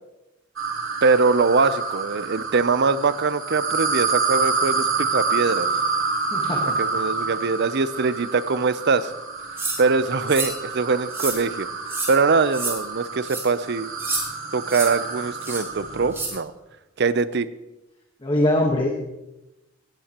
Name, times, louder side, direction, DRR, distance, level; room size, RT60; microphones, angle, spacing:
sound 1, 0.6-16.2, right 4 dB, 80° right, 2.8 m, -28 dB
voice 1, 1.0-5.7 6.6-9.1 9.8-11.7 12.1-13.9 14.5-16.5 17.0-17.5, right 4 dB, 55° right, 15 dB, 0.6 m, -22 dB
voice 2, 6.3-6.8 18.2-18.9, left 1 dB, 25° left, 0 dB, 1.3 m, -22 dB
sound 2, 9.6-9.8 10.3-10.5 11.1-11.4 11.9-12.1 12.5-12.7 13.2-13.4 14.0-14.2 14.7-14.9 15.4-15.6 16.1-16.3, right 3 dB, 10° right, 3.3 m, -28 dB
18.0 x 14.0 x 3.0 m, 0.99 s
head